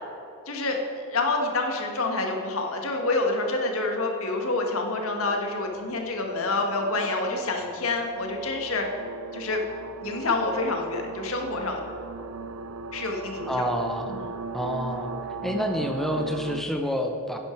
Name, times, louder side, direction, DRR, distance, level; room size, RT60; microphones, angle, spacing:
voice 1, 0.4-8.9 9.3-9.6 10.0-11.8 12.9-13.7 14.1-14.3, left 2 dB, 80° left, 2 dB, 1.7 m, -27 dB
sound 1, 3.0-16.6, right 4 dB, 85° right, 0.5 m, -39 dB
voice 2, 13.5-14.2 14.5-15.1 15.4-17.4, equal, ahead, 3 dB, 0.6 m, -28 dB
11.0 x 9.9 x 4.6 m, 2.8 s
head